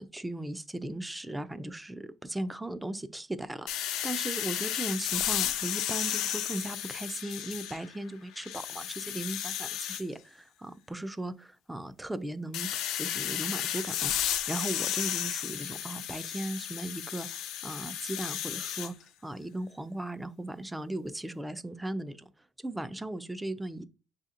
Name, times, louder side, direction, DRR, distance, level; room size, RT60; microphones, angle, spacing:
voice 1, 0.0-14.1 14.5-18.9 19.2-22.2 22.6-23.8, right 1 dB, 10° right, 0.3 m, -37 dB
sound 1, 3.7-8.0 8.4-10.0 12.5-18.9, left 11 dB, 85° left, 0.3 m, -33 dB
6.8 x 2.7 x 2.5 m
cardioid pair, 130°, 0 cm